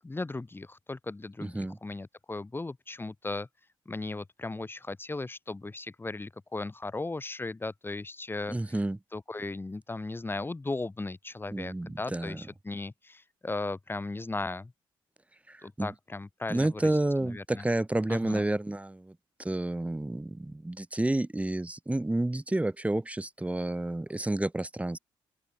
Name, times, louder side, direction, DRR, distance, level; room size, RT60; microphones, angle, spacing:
voice 1, 0.0-3.5 3.9-8.8 9.1-14.7 15.6-16.9 17.2-17.6 18.1-18.4, left 2 dB, 20° left, 2.7 m, -37 dB
voice 2, 1.4-1.8 8.5-9.0 11.5-12.4 15.5-15.9 16.5-25.0, right 1 dB, 15° right, 2.5 m, -30 dB
open air
supercardioid pair, 65°, 10 cm